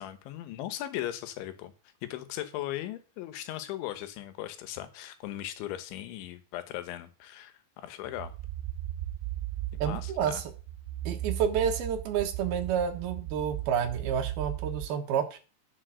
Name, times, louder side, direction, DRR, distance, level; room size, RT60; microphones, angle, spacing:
voice 1, 0.0-1.7 2.0-8.3 9.7-10.4, left 13 dB, 90° left, 11 dB, 3.5 m, -38 dB
sound 1, 8.1-14.9, right 13 dB, 85° right, 3.0 m, -36 dB
voice 2, 9.8-10.4 11.0-15.4, right 8 dB, 70° right, 6 dB, 2.8 m, -29 dB
10.5 x 7.1 x 6.3 m, 0.34 s
omnidirectional pair, 5.2 m